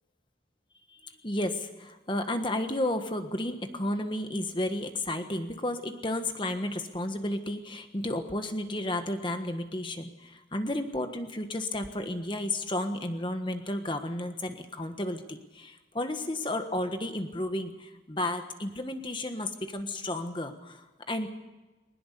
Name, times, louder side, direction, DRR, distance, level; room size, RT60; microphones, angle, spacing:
voice 1, 0.9-21.3, left 1 dB, 25° left, 7 dB, 1.4 m, -32 dB
22.0 x 19.5 x 6.8 m, 1.1 s
head